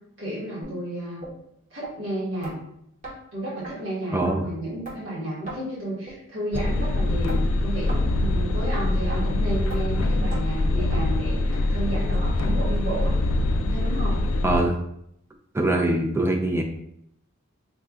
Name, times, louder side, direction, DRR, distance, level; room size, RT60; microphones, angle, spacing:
voice 1, 0.2-1.2 1.7-2.5 3.3-13.2 13.6-14.2, right 1 dB, 60° right, -8 dB, 1.5 m, -32 dB
sound 1, 0.6-0.8 1.2-1.3 1.8-1.9 2.4-2.6 3.0-3.2 3.6-3.7 4.2-4.3 4.8-5.0 5.5-5.6 6.1-6.2 6.7-6.8 7.3-7.4 7.9-8.1 8.5-8.6 9.1-9.2 9.7-9.8 10.3-10.4 10.9-11.0 11.5-11.6 12.1-12.2 12.7-12.8 13.3-13.4, right 2 dB, 35° right, 1.0 m, -38 dB
voice 2, 4.1-4.5 14.4-14.8 15.5-16.6, right 1 dB, 10° right, 2 dB, 0.3 m, -23 dB
sound 2, 6.5-14.6, left 2 dB, 70° left, 0.4 m, -24 dB
3.5 x 2.2 x 3.6 m, 0.75 s
head